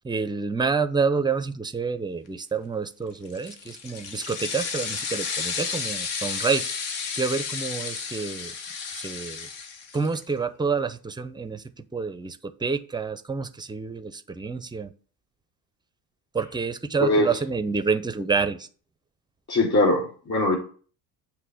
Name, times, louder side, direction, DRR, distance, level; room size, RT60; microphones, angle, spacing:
voice 1, 0.0-6.6 7.2-8.5 9.0-9.4 9.9-11.6 11.9-12.4 12.6-14.9 16.3-18.6, right 5 dB, 10° right, 12 dB, 0.5 m, -28 dB
sound 1, 3.3-10.2, left 5 dB, 60° left, 1.2 m, -32 dB
voice 2, 17.0-17.3 19.5-20.6, left 2 dB, 30° left, 0 dB, 3.8 m, -21 dB
7.7 x 3.0 x 6.2 m, 0.41 s
hypercardioid pair, 65°, 49 cm